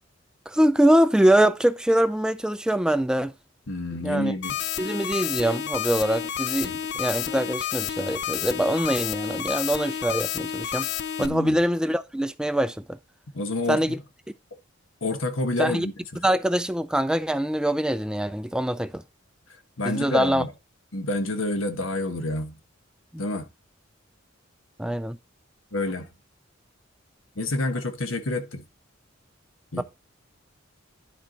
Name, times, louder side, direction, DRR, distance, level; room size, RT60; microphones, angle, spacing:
voice 1, 0.5-3.3 4.0-4.3 4.8-10.9 11.2-13.0 13.7-14.0 15.6-15.9 16.2-19.0 19.9-20.4 24.8-25.2 29.8-29.9, right 1 dB, 5° right, 0.3 m, -23 dB
voice 2, 3.7-4.5 6.6-6.8 11.2-11.6 13.3-14.0 15.0-16.2 19.8-20.5 20.9-22.5 23.2-23.5 25.7-26.1 27.4-28.6 29.7-29.8, left 2 dB, 80° left, 1.3 m, -28 dB
sound 1, 4.4-11.3, left 10 dB, 60° left, 0.5 m, -30 dB
11.0 x 4.5 x 4.0 m
head